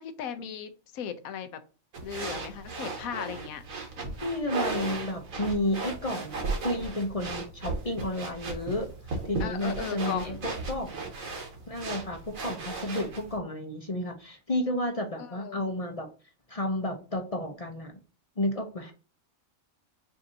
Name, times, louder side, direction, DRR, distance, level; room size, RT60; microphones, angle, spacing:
voice 1, 0.0-1.6 2.0-3.6 9.4-10.5 15.3-15.6, left 8 dB, 85° left, 10 dB, 1.1 m, -37 dB
sound 1, 1.9-13.4, right 3 dB, 75° right, 1.7 m, -36 dB
voice 2, 4.2-8.9 9.2-11.0 11.7-16.1 16.5-17.9 18.4-18.9, left 1 dB, 35° left, 4 dB, 0.7 m, -32 dB
6.5 x 2.7 x 2.7 m, 0.37 s
omnidirectional pair, 1.4 m